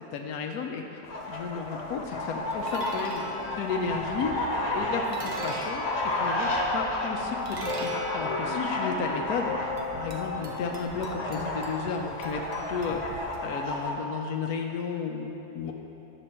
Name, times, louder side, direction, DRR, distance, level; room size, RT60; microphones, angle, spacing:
voice 1, 0.0-4.3 4.7-5.8 6.2-13.0 13.4-15.7, left 5 dB, 85° left, 2 dB, 1.2 m, -33 dB
sound 1, 1.0-13.9, left 1 dB, 50° left, 1.1 m, -32 dB
sound 2, 1.8-13.9, right 2 dB, 35° right, 0.5 m, -42 dB
sound 3, 2.1-10.8, left 6 dB, 65° left, 1.0 m, -38 dB
9.9 x 6.8 x 4.4 m, 3.0 s
omnidirectional pair, 1.6 m